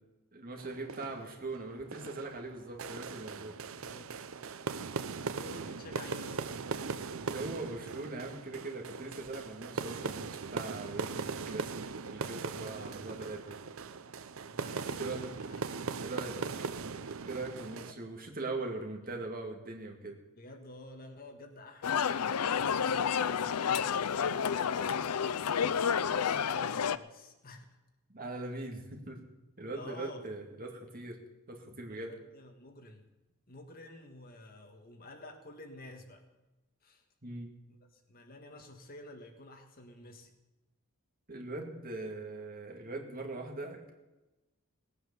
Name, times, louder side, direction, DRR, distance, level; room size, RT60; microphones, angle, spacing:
voice 1, 0.3-3.6 7.3-13.6 15.0-15.2 16.0-16.4 17.2-20.2 28.1-29.2 29.6-31.2 31.5-32.1 37.2-37.5 41.3-43.9, right 2 dB, 40° right, 2 dB, 2.3 m, -41 dB
sound 1, 0.6-17.9, right 5 dB, 60° right, 0.7 m, -40 dB
voice 2, 3.8-4.1 5.1-6.6 12.7-13.1 14.5-16.1 17.7-18.1 20.3-27.8 28.4-28.5 29.7-30.3 31.9-33.0 33.5-36.3 36.8-37.0 37.7-40.4, left 1 dB, 40° left, 4 dB, 1.7 m, -51 dB
sound 2, 21.8-27.0, left 7 dB, 90° left, 0.5 m, -30 dB
18.0 x 9.2 x 7.0 m, 1.1 s
head